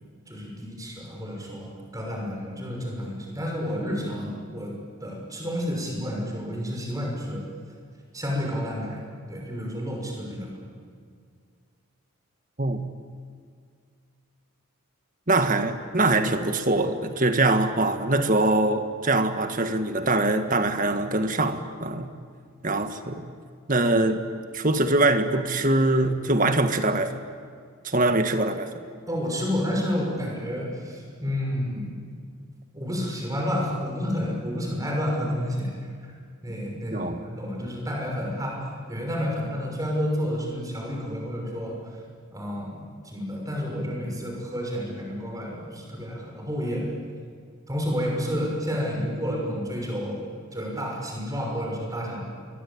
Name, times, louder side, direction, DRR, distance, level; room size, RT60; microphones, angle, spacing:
voice 1, 0.3-4.7 5.0-7.4 8.1-9.0 9.3-10.5 29.1-32.0 32.7-35.7 36.4-38.6 38.9-41.7 42.3-46.9 47.7-50.2 50.5-52.2, equal, 15° right, 0 dB, 6.1 m, -30 dB
voice 2, 15.3-22.1 22.6-23.2 23.7-24.2 24.5-27.1 27.8-28.7 36.9-37.2, right 2 dB, 35° right, 7 dB, 1.7 m, -23 dB
27.0 x 23.0 x 8.7 m, 2.1 s
head